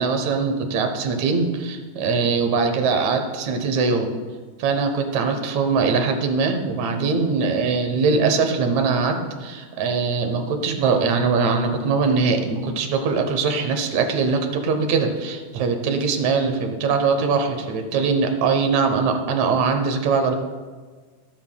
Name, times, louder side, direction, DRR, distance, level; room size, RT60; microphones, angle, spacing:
voice 1, 0.0-4.1 4.6-20.4, right 4 dB, 70° right, 5 dB, 2.1 m, -22 dB
17.5 x 8.0 x 2.3 m, 1.4 s
omnidirectional pair, 3.5 m